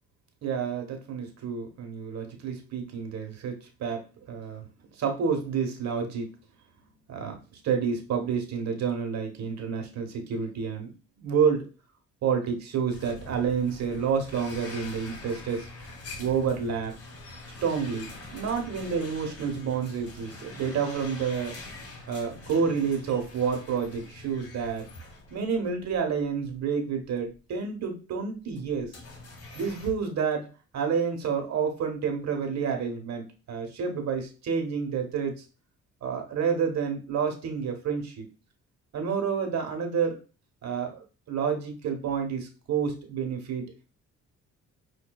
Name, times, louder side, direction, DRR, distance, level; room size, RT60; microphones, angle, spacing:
voice 1, 0.4-4.6 5.0-6.3 7.1-11.7 12.2-15.7 16.2-17.0 17.6-21.5 22.1-24.9 25.3-28.9 29.5-30.5 30.7-35.3 36.0-38.2 38.9-40.2 40.6-43.7, right 6 dB, 60° right, 4 dB, 1.1 m, -29 dB
sound 1, 12.9-26.0 26.4-26.5 27.3-27.4 28.5-29.9, left 2 dB, 50° left, 1.2 m, -44 dB
5.3 x 2.6 x 2.3 m, 0.33 s
cardioid pair, 90°, 30 cm